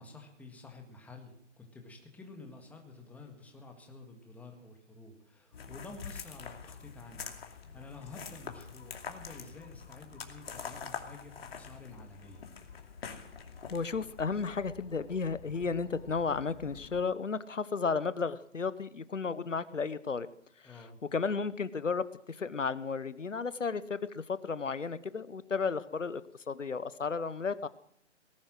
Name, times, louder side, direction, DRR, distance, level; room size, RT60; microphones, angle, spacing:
voice 1, 0.0-12.4 20.6-21.0, left 3 dB, 5° left, 3 dB, 1.8 m, -50 dB
sound 1, 5.5-17.0, left 6 dB, 55° left, 2.7 m, -46 dB
voice 2, 13.7-20.3 20.6-20.7 21.1-26.2 26.5-27.7, left 5 dB, 90° left, 16 dB, 1.0 m, -33 dB
19.0 x 11.0 x 6.3 m, 0.72 s
figure-of-eight pair, 140°, 36 cm